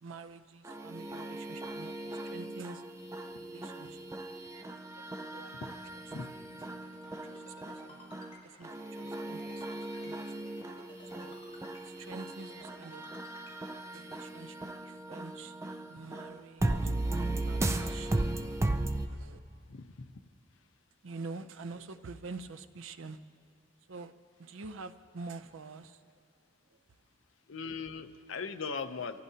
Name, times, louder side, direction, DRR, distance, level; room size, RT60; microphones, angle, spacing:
voice 1, 0.0-2.8 3.4-4.3 4.6-5.7 6.1-6.2 7.0-8.0 8.4-10.4 11.0-11.5 11.8-13.1 13.9-16.9 17.3-18.5 19.1-19.4 21.0-23.2 23.9-24.1 24.4-26.0 26.7-26.8, right 4 dB, 80° right, 10 dB, 0.6 m, -47 dB
sound 1, 0.6-19.1, right 2 dB, 15° right, 0.4 m, -37 dB
Ringtone, 6.7-13.5, left 2 dB, 30° left, 4.3 m, -55 dB
voice 2, 19.7-20.1 27.5-29.2, left 5 dB, 75° left, 8 dB, 0.6 m, -39 dB
24.5 x 14.5 x 2.8 m, 2.4 s
head